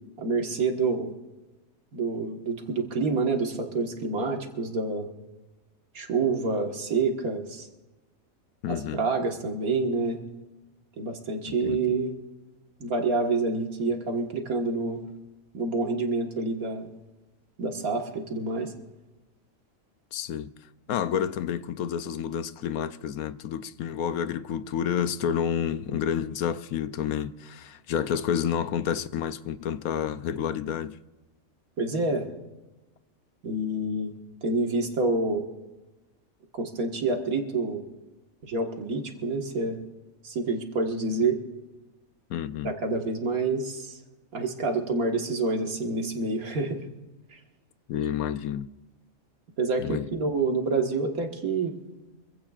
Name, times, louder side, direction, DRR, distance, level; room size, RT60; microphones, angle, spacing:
voice 1, 0.2-1.1 1.9-5.1 5.9-7.7 8.7-10.2 11.0-12.1 12.8-15.0 15.5-16.9 17.6-18.7 31.8-32.3 33.4-34.2 34.4-35.4 36.5-37.8 38.4-39.8 40.2-41.4 42.6-44.0 44.3-46.9 47.3-47.4 49.6-51.7, right 3 dB, 85° right, 2.1 m, -27 dB
voice 2, 8.6-9.1 11.6-11.8 20.1-20.5 20.9-31.0 42.3-42.7 47.9-48.7 49.8-50.0, left 9 dB, 85° left, 1.1 m, -29 dB
25.5 x 16.0 x 2.5 m
omnidirectional pair, 1.5 m